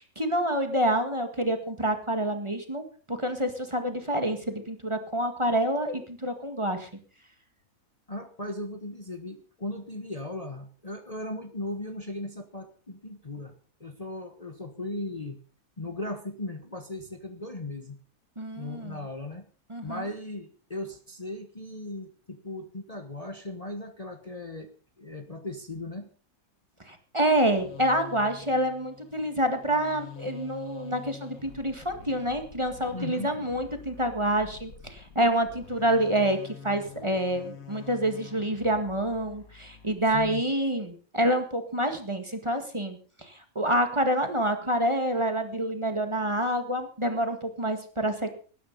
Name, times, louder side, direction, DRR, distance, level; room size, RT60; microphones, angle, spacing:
voice 1, 0.0-6.9 18.4-19.0 19.7-20.0 26.9-48.4, right 1 dB, 20° right, 6 dB, 1.9 m, -27 dB
voice 2, 8.1-13.5 13.8-15.4 15.8-18.0 18.5-19.4 19.8-24.7 25.0-26.1 32.9-33.3 40.1-40.4, left 2 dB, 25° left, 6 dB, 1.3 m, -37 dB
sound 1, 27.2-40.3, left 6 dB, 70° left, 2.2 m, -47 dB
19.0 x 10.5 x 5.5 m, 0.40 s
omnidirectional pair, 1.5 m